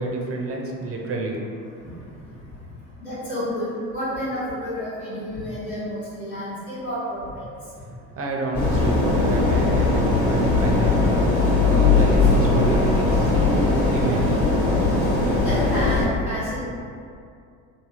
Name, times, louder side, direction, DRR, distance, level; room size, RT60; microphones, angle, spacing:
voice 1, 0.0-1.4 8.2-10.9 11.6-14.4, right 2 dB, 35° right, 0 dB, 0.5 m, -29 dB
voice 2, 3.0-7.4 15.4-16.6, equal, 90° left, -13 dB, 1.4 m, -30 dB
sound 1, 8.5-16.0, left 3 dB, 65° left, 1.1 m, -19 dB
3.1 x 2.7 x 2.4 m, 2.4 s
hypercardioid pair, 60°, 42 cm